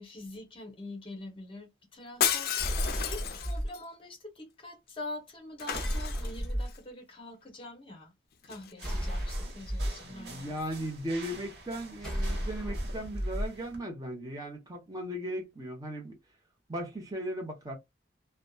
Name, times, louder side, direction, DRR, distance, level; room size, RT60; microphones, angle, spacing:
voice 1, 0.0-2.7 3.0-8.1 8.4-10.9, left 1 dB, 30° left, 0.8 m, -45 dB
Shatter, 2.2-3.8 5.6-6.7 8.4-8.7, left 9 dB, 55° left, 0.4 m, -32 dB
sound 1, 2.6-3.7 5.7-6.7 8.8-9.9 12.0-13.5, equal, 5° left, 1.2 m, -33 dB
sound 2, 8.8-13.8, right 2 dB, 65° right, 1.0 m, -48 dB
voice 2, 10.0-16.2 16.7-17.8, right 1 dB, 20° right, 0.8 m, -37 dB
2.7 x 2.3 x 2.2 m
head